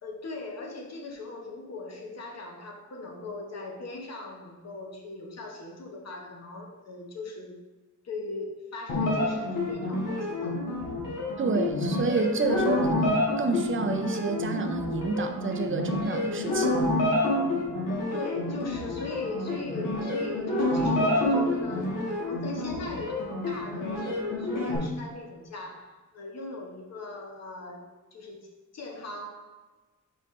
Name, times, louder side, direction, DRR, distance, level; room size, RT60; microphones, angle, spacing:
voice 1, 0.0-7.5 8.0-10.7 17.9-27.8 28.1-29.6, left 3 dB, 50° left, 1 dB, 1.1 m, -39 dB
sound 1, 8.9-24.8, left 1 dB, 75° left, 1.7 m, -28 dB
voice 2, 11.4-16.9, right 4 dB, 40° right, 6 dB, 0.6 m, -29 dB
5.6 x 5.3 x 3.2 m, 1.2 s
wide cardioid pair, 140°, 32 cm